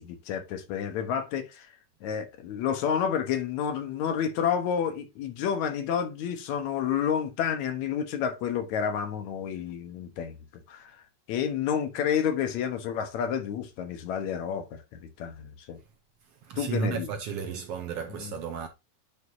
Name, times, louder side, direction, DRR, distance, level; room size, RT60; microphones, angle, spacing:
voice 1, 0.0-1.7 2.0-10.4 10.7-11.0 11.3-15.8 16.6-17.1 18.2-18.3, left 8 dB, 75° left, 2.3 m, -30 dB
voice 2, 16.4-18.7, right 6 dB, 70° right, 1.5 m, -33 dB
9.5 x 5.1 x 2.7 m
omnidirectional pair, 3.4 m